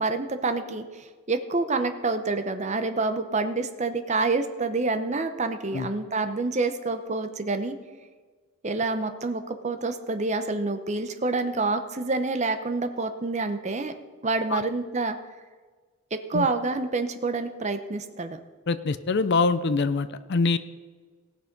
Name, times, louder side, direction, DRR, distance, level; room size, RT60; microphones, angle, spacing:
voice 1, 0.0-7.8 8.6-13.9 14.2-15.2 16.1-18.4, right 3 dB, 30° right, 8 dB, 0.7 m, -27 dB
voice 2, 18.7-20.6, left 4 dB, 50° left, 14 dB, 0.5 m, -24 dB
18.0 x 6.3 x 5.2 m, 1.4 s
head